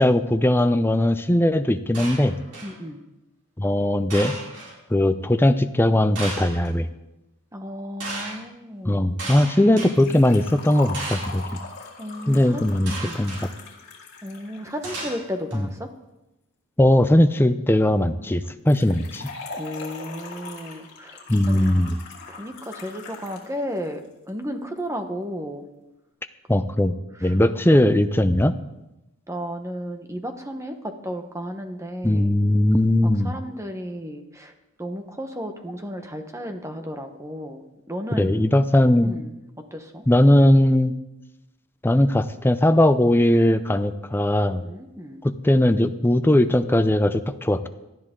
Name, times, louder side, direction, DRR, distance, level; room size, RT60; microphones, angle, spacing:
voice 1, 0.0-2.3 3.6-4.4 4.9-6.9 8.9-11.4 12.3-13.4 15.5-15.7 16.8-19.3 21.3-22.0 26.5-26.9 27.2-28.5 32.0-33.3 38.1-39.1 40.1-40.9 41.8-44.6 45.2-47.7, left 1 dB, 10° left, 10 dB, 0.5 m, -19 dB
sound 1, 1.9-2.8 4.1-4.7 6.1-6.7 8.0-8.4 9.2-9.9 10.9-11.4 12.9-13.4 14.8-15.6, right 2 dB, 85° right, 5.9 m, -34 dB
voice 2, 2.6-3.0 7.5-9.1 12.0-13.2 14.2-15.9 19.5-21.7 22.3-25.6 27.2-27.4 29.3-32.3 33.0-34.5 34.8-37.6 37.9-38.4 39.0-39.4 39.7-40.0 44.6-45.2, equal, 15° right, 6 dB, 1.1 m, -34 dB
Liquid, 9.9-14.9 18.7-23.5 23.8-23.9 24.8-24.9, left 3 dB, 55° left, 3.7 m, -40 dB
18.5 x 12.5 x 3.8 m, 0.93 s
head